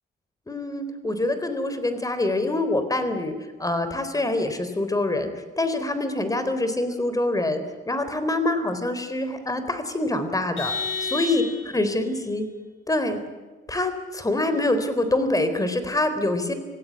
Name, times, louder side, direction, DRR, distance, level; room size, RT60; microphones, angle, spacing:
voice 1, 0.5-3.3 3.6-5.3 5.6-7.6 7.9-10.7 11.0-11.4 11.7-12.5 12.9-13.2 13.7-16.5, left 2 dB, 15° left, 9 dB, 4.0 m, -25 dB
Vehicle horn car horn honking, 10.6-12.0, left 4 dB, 75° left, 3.9 m, -30 dB
26.0 x 16.5 x 9.6 m, 1.3 s
cardioid pair, 90°, 20 cm